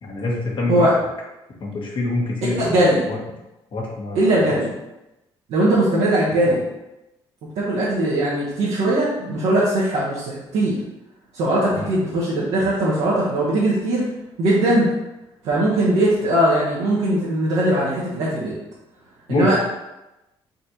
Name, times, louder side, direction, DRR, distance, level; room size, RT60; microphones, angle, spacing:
voice 1, 0.0-0.9 1.6-3.2 3.7-4.6 6.5-6.6 11.7-11.9 19.3-19.5, left 2 dB, 50° left, -2 dB, 1.4 m, -26 dB
voice 2, 2.6-3.0 4.1-4.7 5.5-6.6 7.5-10.8 11.3-14.1 14.4-14.9 15.4-18.6 19.3-19.5, right 1 dB, 85° right, -8 dB, 1.2 m, -20 dB
4.1 x 2.7 x 4.4 m, 0.95 s
cardioid pair, 90°, 11 cm